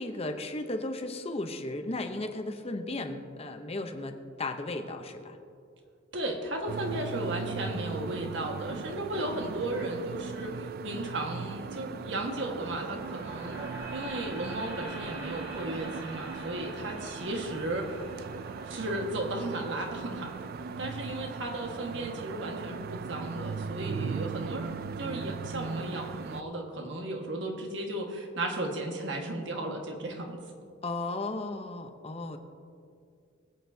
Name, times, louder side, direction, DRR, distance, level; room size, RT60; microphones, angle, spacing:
voice 1, 0.0-5.4 30.8-32.4, left 2 dB, 30° left, 6 dB, 0.8 m, -35 dB
voice 2, 6.1-13.6 13.9-18.0 18.6-20.5 20.8-30.4, right 1 dB, 65° right, 2 dB, 1.6 m, -35 dB
sound 1, 6.7-26.4, right 5 dB, 50° right, 0.3 m, -38 dB
sound 2, 12.7-22.8, right 1 dB, 20° right, 2.2 m, -47 dB
22.0 x 8.4 x 2.8 m, 2.3 s
head